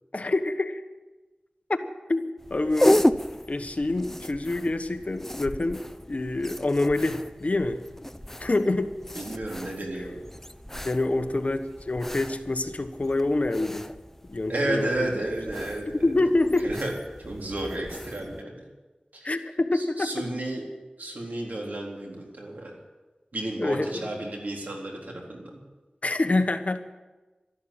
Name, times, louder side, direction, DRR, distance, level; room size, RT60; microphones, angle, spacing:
voice 1, 0.1-0.8 1.7-1.8 2.1-3.0 3.5-7.8 8.4-8.9 10.8-13.9 14.3-15.1 15.9-16.7 19.2-20.1 23.6-24.1 26.0-26.8, left 2 dB, 55° left, 8 dB, 1.3 m, -26 dB
sound 1, 2.4-18.4, left 1 dB, 10° left, 0.7 m, -33 dB
voice 2, 9.2-10.2 14.5-16.1 16.6-16.9 17.2-18.6 19.1-19.3 19.7-20.6 21.0-22.7 23.3-25.5, right 1 dB, 85° right, -1 dB, 3.7 m, -32 dB
13.0 x 11.5 x 8.9 m, 1.2 s
wide cardioid pair, 50°, 3 cm